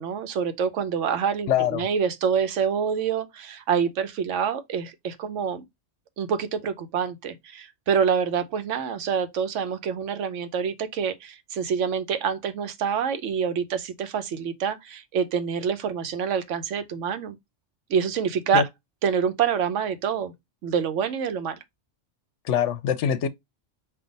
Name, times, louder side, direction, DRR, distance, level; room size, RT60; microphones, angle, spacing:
voice 1, 0.0-5.6 6.2-17.4 17.9-18.6 19.0-20.3 20.6-21.6, right 7 dB, 85° right, 1.0 m, -26 dB
voice 2, 1.5-1.9 18.5-18.6 22.4-23.3, left 9 dB, 75° left, 0.9 m, -23 dB
5.6 x 2.4 x 3.9 m
omnidirectional pair, 1.2 m